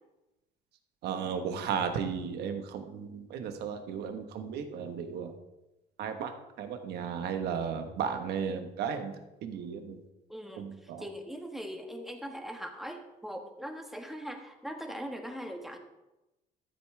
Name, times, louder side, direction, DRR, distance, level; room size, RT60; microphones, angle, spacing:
voice 1, 1.0-5.3 6.0-6.3 6.6-9.1 9.4-10.0 10.6-11.0, right 7 dB, 80° right, 6 dB, 1.3 m, -34 dB
voice 2, 10.3-15.8, equal, ahead, 3 dB, 1.5 m, -41 dB
13.5 x 8.3 x 3.4 m, 0.98 s
cardioid pair, 110°, 17 cm